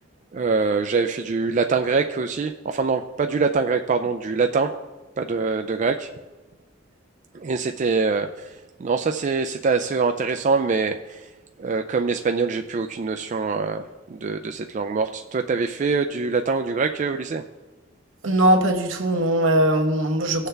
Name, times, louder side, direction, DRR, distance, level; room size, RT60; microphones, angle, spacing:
voice 1, 0.3-4.7 5.2-6.1 7.3-11.3 11.6-17.4, right 4 dB, 40° right, 6 dB, 0.3 m, -24 dB
voice 2, 18.2-20.5, right 1 dB, 75° right, 4 dB, 1.2 m, -20 dB
17.5 x 6.5 x 3.4 m, 1.2 s
head